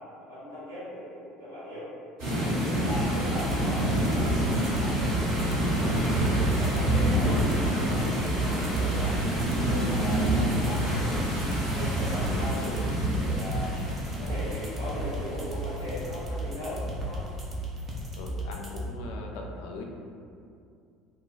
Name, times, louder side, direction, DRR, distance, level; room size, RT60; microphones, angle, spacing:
voice 1, 0.3-1.9 2.7-4.3 4.8-9.2 9.6-12.8 13.1-13.8 14.2-17.2, left 1 dB, 85° right, -12 dB, 1.2 m, -38 dB
sound 1, 2.2-16.8, right 1 dB, 60° right, 1.3 m, -27 dB
voice 2, 2.7-3.0 18.2-19.8, left 3 dB, 65° left, 1 dB, 0.3 m, -40 dB
sound 2, 2.9-18.9, right 1 dB, 30° right, 0.5 m, -35 dB
2.3 x 2.2 x 3.8 m, 2.4 s
figure-of-eight pair, 60°, 0 cm